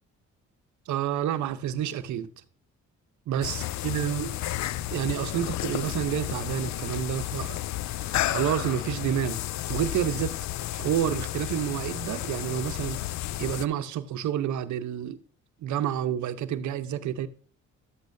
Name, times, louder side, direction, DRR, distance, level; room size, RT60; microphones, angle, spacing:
voice 1, 0.9-2.3 3.3-4.3 4.9-7.6 8.0-9.4 9.7-10.4 10.7-13.0 13.4-15.2 15.6-17.3, right 10 dB, 70° right, 0.8 m, -29 dB
sound 1, 3.4-13.6, left 14 dB, 65° left, 0.5 m, -32 dB
11.0 x 8.2 x 2.6 m
cardioid pair, 90°, 30 cm